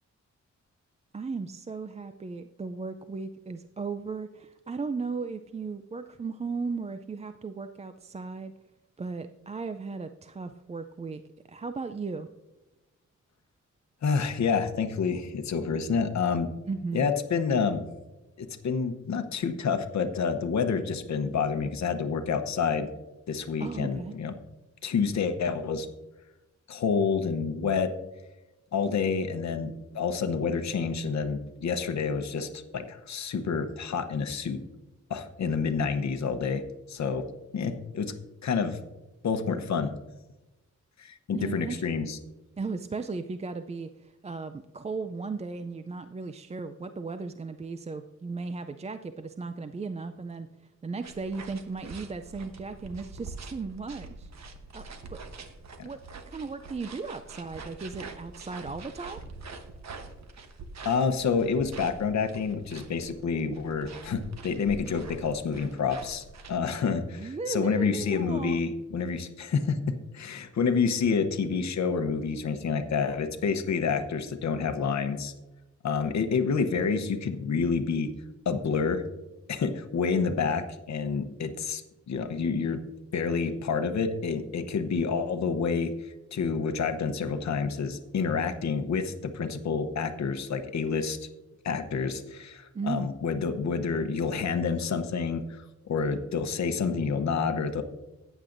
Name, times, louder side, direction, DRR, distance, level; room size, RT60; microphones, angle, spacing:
voice 1, 1.1-8.5 9.0-11.2 11.5-12.3 16.7-17.1 23.6-24.1 41.3-42.0 42.6-54.3 54.7-55.2 55.8-56.0 56.3-59.2 67.2-68.6 92.7-93.1, right 4 dB, 25° right, 9 dB, 0.4 m, -36 dB
voice 2, 14.0-16.5 16.9-17.9 18.4-22.9 23.3-24.3 24.8-25.9 26.7-27.9 28.7-34.6 35.1-36.6 36.9-37.2 37.5-38.1 38.4-38.8 39.2-39.9 41.0-42.2 60.8-69.8 70.1-75.3 75.8-78.1 78.4-79.0 79.5-82.8 83.1-91.2 91.6-97.8, left 5 dB, 70° left, 7 dB, 0.9 m, -28 dB
sound 1, 51.0-66.6, right 3 dB, 65° right, 1.1 m, -45 dB
14.5 x 9.1 x 2.6 m, 1.0 s
wide cardioid pair, 125°, 29 cm